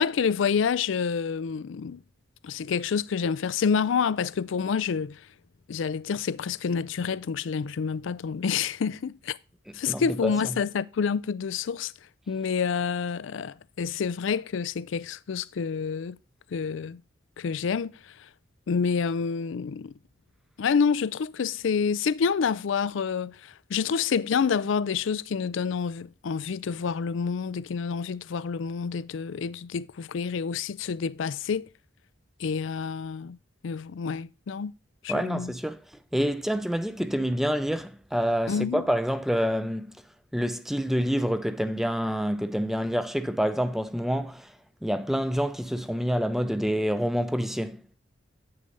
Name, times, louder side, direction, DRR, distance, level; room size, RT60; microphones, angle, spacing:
voice 1, 0.0-2.0 2.4-5.3 5.7-9.4 9.7-11.9 12.3-16.2 16.5-17.0 17.4-18.3 18.7-19.9 20.6-31.6 32.4-33.4 33.6-34.7 35.0-35.5 38.5-38.8, left 6 dB, 70° left, 0.4 m, -28 dB
voice 2, 9.9-10.3 35.1-35.8 36.1-39.9 40.3-44.5 44.8-47.8, equal, ahead, 0.4 m, -27 dB
8.7 x 6.6 x 4.0 m
head